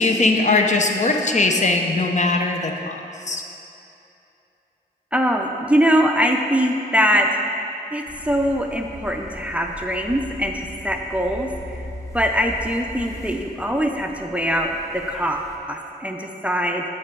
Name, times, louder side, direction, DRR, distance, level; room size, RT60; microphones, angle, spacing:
voice 1, 0.0-3.4, left 3 dB, 45° left, 3 dB, 0.6 m, -20 dB
voice 2, 5.1-7.6 7.9-11.8 12.1-16.8, equal, 5° right, 3 dB, 0.4 m, -22 dB
sound 1, 8.1-15.6, equal, 20° left, 1.0 m, -38 dB
8.8 x 3.3 x 4.6 m, 2.8 s
cardioid pair, 40°, 17 cm